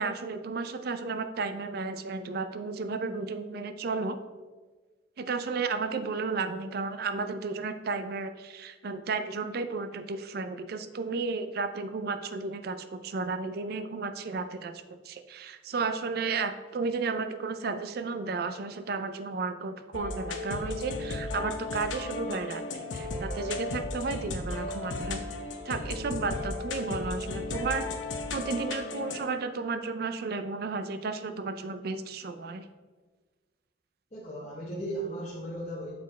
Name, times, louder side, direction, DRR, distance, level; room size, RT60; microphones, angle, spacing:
voice 1, 0.0-4.2 5.2-25.2 25.6-28.0 28.3-32.7, right 4 dB, 55° right, 9 dB, 0.4 m, -33 dB
sound 1, 19.9-29.2, left 2 dB, 80° left, 0.7 m, -35 dB
voice 2, 34.1-35.9, right 1 dB, 35° left, -6 dB, 1.0 m, -36 dB
7.2 x 4.3 x 4.1 m, 1.3 s
head